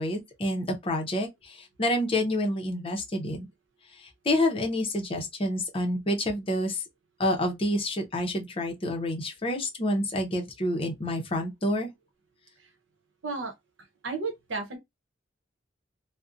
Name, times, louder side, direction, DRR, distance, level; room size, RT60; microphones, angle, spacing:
voice 1, 0.0-3.5 4.0-6.8 7.2-11.9, left 1 dB, 30° left, 0.6 m, -28 dB
voice 2, 13.2-13.5 14.0-14.8, right 4 dB, 80° right, 0.7 m, -32 dB
2.5 x 2.0 x 2.4 m
head